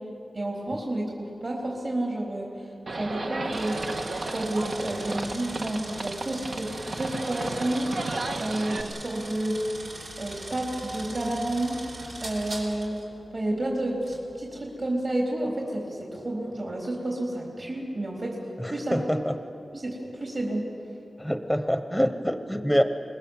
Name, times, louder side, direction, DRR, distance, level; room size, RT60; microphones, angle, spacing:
voice 1, 0.3-3.8 4.3-8.0 8.4-9.6 10.2-11.8 12.2-13.0 13.3-18.4 18.6-19.0 19.7-20.7, right 1 dB, 45° right, -2 dB, 4.0 m, -30 dB
Livestock farm animals working animals, 2.9-8.8, right 2 dB, 65° right, 1.6 m, -34 dB
sound 1, 3.5-13.0 14.0-14.2, right 2 dB, 90° right, 4.6 m, -41 dB
voice 2, 18.6-19.3 21.2-22.8, equal, 5° right, 8 dB, 1.0 m, -25 dB
26.0 x 20.5 x 7.4 m, 2.9 s
wide cardioid pair, 85°, 0 cm